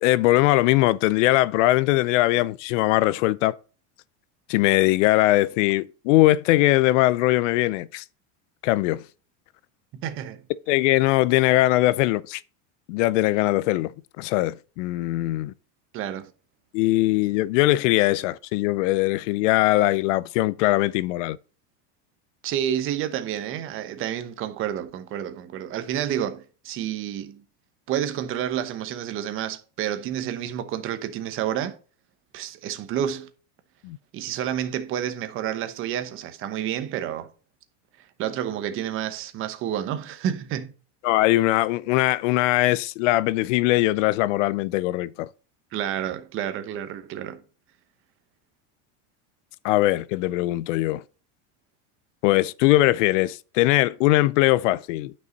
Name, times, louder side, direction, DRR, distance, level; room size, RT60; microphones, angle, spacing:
voice 1, 0.0-3.6 4.5-8.0 8.6-9.0 10.7-12.4 12.9-15.5 16.7-21.4 33.8-34.0 41.0-45.3 49.6-51.0 52.2-55.1, left 17 dB, 75° left, 0.5 m, -21 dB
voice 2, 9.9-10.4 15.9-16.3 22.4-27.4 27.9-31.8 32.3-33.3 34.1-37.3 38.2-40.7 45.7-47.4, right 10 dB, 35° right, 1.0 m, -29 dB
9.4 x 5.5 x 4.0 m
cardioid pair, 160°, 37 cm